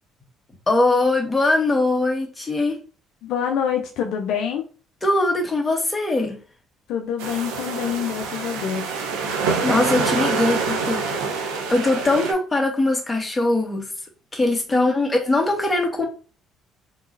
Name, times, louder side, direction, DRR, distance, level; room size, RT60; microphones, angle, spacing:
voice 1, 0.7-2.8 5.0-6.4 9.6-13.9 14.3-16.0, left 2 dB, 20° left, 1.5 m, -21 dB
voice 2, 3.2-4.6 6.9-8.9 14.7-15.0, left 8 dB, 70° left, 0.5 m, -26 dB
sound 1, 7.2-12.3, right 4 dB, 85° right, 0.7 m, -26 dB
3.6 x 3.1 x 2.6 m
hypercardioid pair, 65°, 0 cm